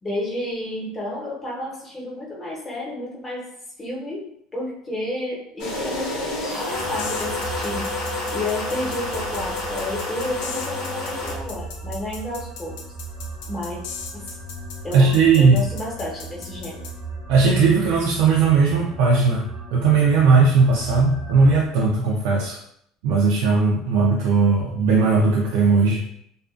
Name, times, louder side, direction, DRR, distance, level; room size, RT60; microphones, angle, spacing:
voice 1, 0.0-3.4 3.8-4.3 4.5-6.1 6.6-7.8 8.3-12.8 13.5-13.8 14.1-14.4 14.8-16.9, left 1 dB, 20° left, -4 dB, 0.9 m, -31 dB
sound 1, 5.6-11.4, left 2 dB, 65° left, 0.8 m, -29 dB
sound 2, 6.7-21.7, right 2 dB, 5° right, 0.5 m, -37 dB
sound 3, 7.0-16.9, left 5 dB, 80° left, 0.4 m, -37 dB
voice 2, 14.9-15.6 17.3-19.4 19.7-22.6 23.0-26.0, right 4 dB, 80° right, -3 dB, 0.4 m, -17 dB
2.4 x 2.3 x 2.3 m, 0.70 s
supercardioid pair, 120°, 0 cm